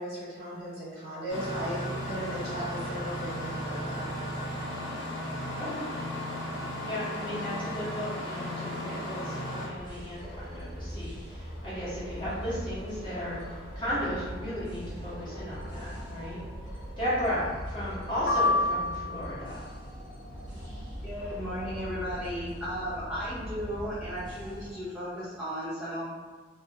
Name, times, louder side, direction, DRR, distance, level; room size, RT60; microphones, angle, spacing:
voice 1, 0.0-4.0, equal, 50° right, -7 dB, 0.7 m, -37 dB
Engine starting, 1.3-9.7, equal, 75° left, 0.8 m, -35 dB
voice 2, 6.8-13.4 13.7-16.4 17.0-19.7, equal, 25° left, -11 dB, 1.0 m, -35 dB
sound 1, 9.7-24.7, equal, 25° right, 1.0 m, -41 dB
sound 2, 18.3-19.5, left 2 dB, 50° left, 0.4 m, -27 dB
voice 3, 21.0-26.1, equal, 5° right, -14 dB, 0.5 m, -35 dB
2.4 x 2.0 x 2.6 m, 1.4 s
head